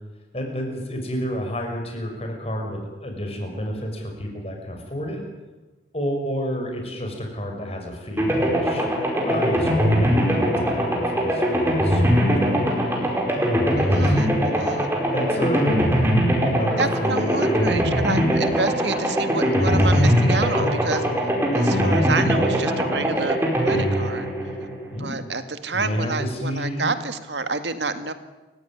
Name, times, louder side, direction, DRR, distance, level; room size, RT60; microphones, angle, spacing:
voice 1, 0.3-5.2 5.9-13.1 13.4-14.2 15.0-15.8 16.4-17.7 24.9-25.2 25.7-26.9, equal, 35° left, 3 dB, 6.0 m, -30 dB
sound 1, 8.2-25.1, equal, 15° right, 5.1 m, -21 dB
voice 2, 13.7-14.9 16.8-23.4 23.6-24.3 25.0-28.1, right 3 dB, 80° right, 9 dB, 2.1 m, -29 dB
29.0 x 16.5 x 9.9 m, 1.2 s
head